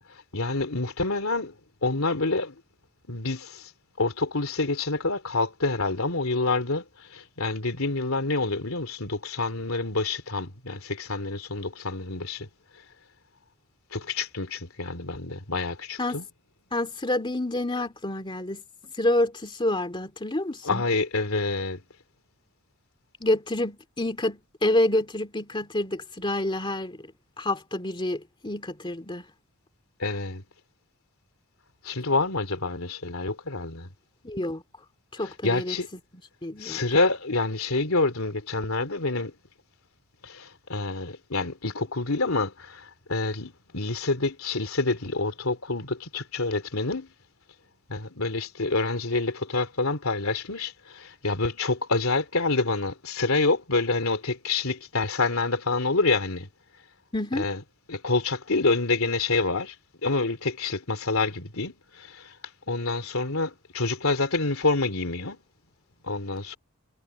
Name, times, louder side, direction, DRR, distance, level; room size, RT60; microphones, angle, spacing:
voice 1, 0.1-1.5 1.8-2.6 3.1-3.7 4.0-12.5 13.9-16.3 20.6-21.8 30.0-30.4 31.8-33.9 35.2-35.9 36.6-39.3 40.2-47.1 47.9-56.5 57.3-57.6 57.9-59.7 60.0-62.3 62.7-65.4 66.0-66.6, left 3 dB, 75° left, 3.0 m, -27 dB
voice 2, 16.7-18.6 19.0-20.8 23.2-27.1 27.4-29.2 34.2-34.6 35.1-35.8 36.4-36.8 57.1-57.4, left 1 dB, 25° left, 2.5 m, -28 dB
head